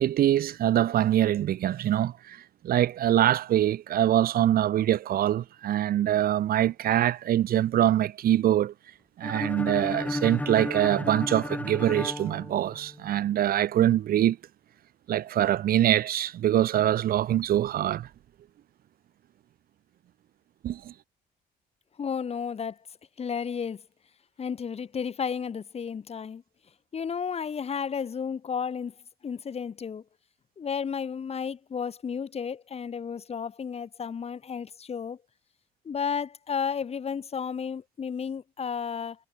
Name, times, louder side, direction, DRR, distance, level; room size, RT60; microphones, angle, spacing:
voice 1, 0.0-8.7 9.2-14.4 15.1-18.1 20.6-20.9, right 12 dB, 60° right, 2.2 m, -24 dB
sound 1, 9.2-13.1, left 1 dB, 10° left, 3.2 m, -33 dB
voice 2, 22.0-22.8 23.2-23.8 24.4-26.4 26.9-28.9 29.2-30.0 30.6-35.2 35.8-39.2, left 6 dB, 35° left, 6.6 m, -32 dB
cardioid pair, 110°, 17 cm